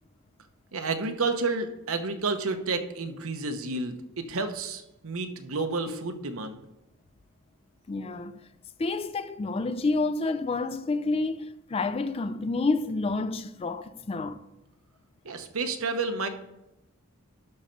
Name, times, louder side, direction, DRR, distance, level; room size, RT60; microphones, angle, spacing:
voice 1, 0.7-6.6 15.2-16.3, right 3 dB, 70° right, 0.9 m, -30 dB
voice 2, 7.9-8.4 8.8-14.4, left 3 dB, 25° left, 0.3 m, -29 dB
11.0 x 4.4 x 5.2 m
head